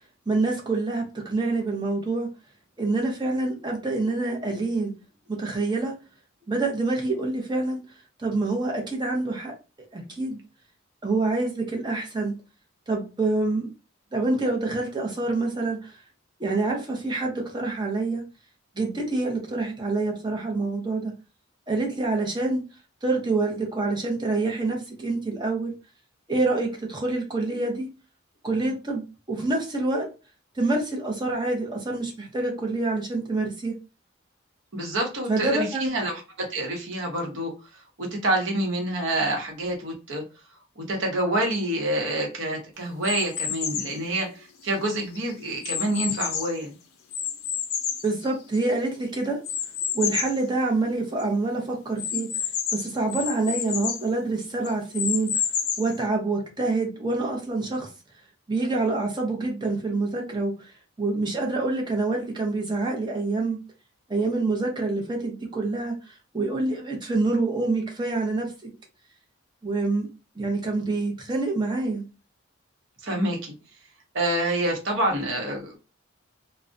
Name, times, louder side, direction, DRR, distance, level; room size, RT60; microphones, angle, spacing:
voice 1, 0.3-2.3 2.8-4.9 5.3-5.9 6.5-7.8 8.2-9.6 9.9-10.4 11.0-12.3 12.9-13.7 14.1-16.0 16.4-18.2 18.8-21.1 21.7-22.6 23.0-25.7 26.3-27.9 28.4-30.1 30.6-33.8 35.3-35.9 48.0-49.4 49.9-52.3 52.7-55.4 55.8-57.9 58.5-63.6 64.1-68.7 69.6-70.1 70.4-72.0, right 3 dB, 20° right, 0.6 m, -26 dB
voice 2, 34.7-40.2 40.8-46.8 73.0-73.5 74.1-75.8, right 1 dB, 65° right, 0.8 m, -27 dB
sound 1, 43.0-44.0 44.6-46.6 47.1-48.8 49.4-50.4 50.9-51.0 51.2-51.3 52.0-54.1 54.6-56.0, left 8 dB, 90° left, 0.5 m, -29 dB
2.4 x 2.1 x 2.5 m
head